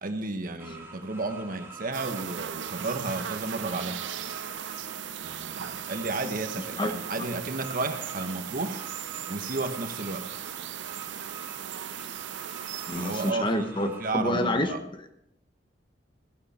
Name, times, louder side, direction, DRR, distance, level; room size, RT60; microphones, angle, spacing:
voice 1, 0.0-4.0 5.2-8.8 9.3-10.3 12.9-14.8, right 3 dB, 50° right, 7 dB, 1.2 m, -33 dB
sound 1, 0.6-14.1, right 3 dB, 15° right, 2.2 m, -47 dB
sound 2, 1.9-13.3, right 10 dB, 85° right, 0.5 m, -37 dB
voice 2, 12.9-13.9 14.1-14.7, left 1 dB, 25° left, 7 dB, 1.1 m, -27 dB
15.5 x 11.0 x 4.3 m, 0.77 s
head